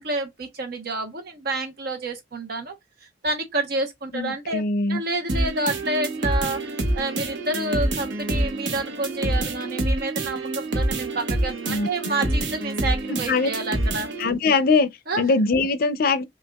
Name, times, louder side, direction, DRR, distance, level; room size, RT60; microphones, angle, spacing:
voice 1, 0.0-2.7 3.2-4.6 4.9-14.1 15.1-15.2, right 2 dB, 60° right, 1.0 m, -29 dB
voice 2, 4.1-5.0 11.7-11.9 12.3-12.4 13.1-13.5 14.2-14.9 15.2-16.2, left 3 dB, 55° left, 0.5 m, -22 dB
sound 1, 5.3-14.3, right 1 dB, 85° right, 0.9 m, -27 dB
5.7 x 2.4 x 2.3 m
head